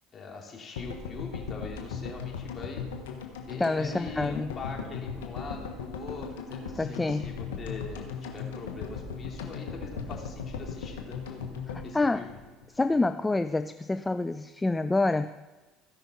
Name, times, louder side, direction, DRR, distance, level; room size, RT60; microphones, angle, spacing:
voice 1, 0.1-2.8 3.5-11.4 11.8-12.3, left 4 dB, 35° left, -1 dB, 2.8 m, -42 dB
sound 1, 0.8-13.0 13.2-13.3 13.5-13.6, left 5 dB, 85° left, 1.2 m, -38 dB
voice 2, 3.6-4.5 6.8-7.3 11.9-12.3 12.7-15.3, left 2 dB, 15° left, 10 dB, 0.3 m, -27 dB
16.5 x 5.7 x 4.2 m, 1.2 s
hypercardioid pair, 75°, 0 cm